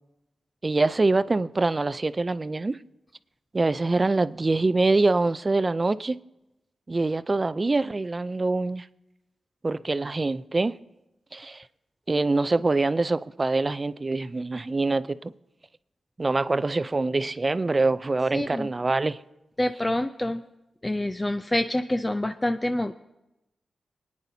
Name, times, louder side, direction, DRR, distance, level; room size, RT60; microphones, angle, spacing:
voice 1, 0.6-2.8 3.5-6.2 6.9-8.9 9.6-10.7 11.3-11.6 12.1-15.3 16.2-19.2, right 3 dB, 35° right, 0.4 m, -24 dB
voice 2, 18.3-18.7 19.6-20.4 20.8-22.9, left 1 dB, 20° left, 0.5 m, -26 dB
26.5 x 9.6 x 2.8 m
cardioid pair, 65°, 0 cm